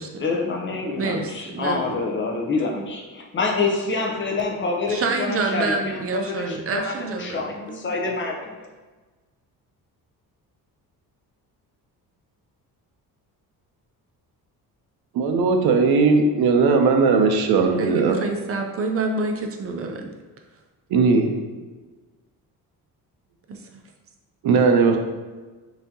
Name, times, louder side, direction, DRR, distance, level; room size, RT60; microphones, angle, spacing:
voice 1, 0.2-8.7, left 3 dB, 30° left, 0 dB, 0.6 m, -27 dB
voice 2, 1.0-1.9 4.9-7.9 17.8-20.1 23.5-23.8, right 3 dB, 40° right, 3 dB, 0.4 m, -28 dB
voice 3, 15.1-18.2 20.9-21.3 24.4-25.0, right 4 dB, 75° right, 4 dB, 0.6 m, -18 dB
5.6 x 2.7 x 2.7 m, 1.3 s
cardioid pair, 145°, 38 cm